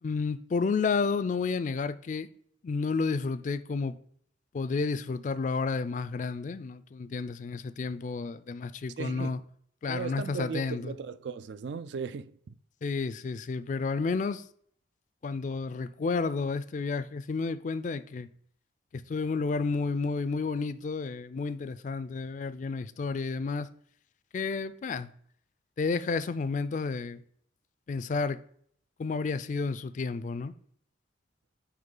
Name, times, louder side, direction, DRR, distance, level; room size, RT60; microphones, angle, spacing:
voice 1, 0.0-2.3 2.6-4.0 4.5-9.4 9.8-11.0 12.8-14.4 15.2-18.3 18.9-23.7 24.3-25.1 25.8-27.2 27.9-28.4 29.0-30.5, left 4 dB, 45° left, 0.3 m, -31 dB
voice 2, 9.0-9.4 9.9-12.6, right 6 dB, 70° right, 0.4 m, -37 dB
8.9 x 3.1 x 3.8 m
head